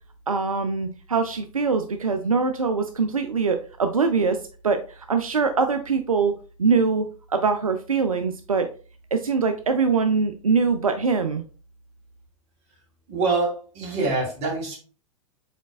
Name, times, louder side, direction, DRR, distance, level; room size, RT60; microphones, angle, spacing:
voice 1, 0.3-4.4 4.6-6.3 6.6-8.7 9.1-11.4, right 5 dB, 85° right, 7 dB, 0.4 m, -23 dB
voice 2, 13.1-14.8, right 3 dB, 40° right, 0 dB, 2.2 m, -25 dB
5.0 x 4.1 x 2.3 m, 0.38 s
figure-of-eight pair, 95°, 18 cm